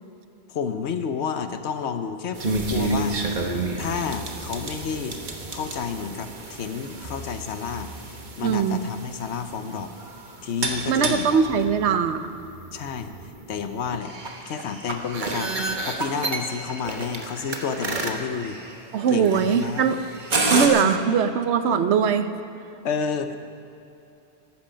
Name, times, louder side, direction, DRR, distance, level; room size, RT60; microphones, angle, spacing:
voice 1, 0.5-3.2 3.8-5.2 5.5-7.9 8.4-9.9 10.4-11.5 12.7-13.1 13.5-14.1 14.4-18.6 19.1-19.9 20.7-21.1 22.8-23.4, left 6 dB, 85° left, 8 dB, 1.1 m, -30 dB
sound 1, 2.3-20.7, right 3 dB, 45° right, 1.2 m, -31 dB
voice 2, 8.4-8.8 10.9-12.3 13.9-14.0 18.9-20.0 20.5-22.3, right 6 dB, 80° right, 10 dB, 1.0 m, -21 dB
14.5 x 12.0 x 5.2 m, 2.8 s
omnidirectional pair, 1.1 m